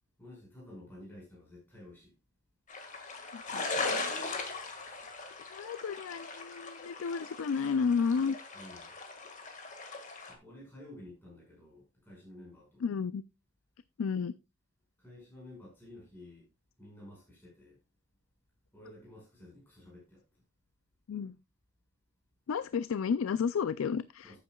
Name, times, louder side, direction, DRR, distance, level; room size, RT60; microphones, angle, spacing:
voice 1, 0.2-2.1 8.5-8.9 10.3-12.8 15.0-16.5 16.8-17.8 18.7-20.2 24.2-24.4, left 1 dB, 10° left, 5.5 m, -52 dB
sound 1, 2.7-10.3, left 3 dB, 35° left, 1.7 m, -39 dB
voice 2, 5.5-8.4 12.8-13.2 14.0-14.3 21.1-21.4 22.5-24.4, left 6 dB, 70° left, 0.4 m, -32 dB
13.5 x 8.6 x 2.3 m
head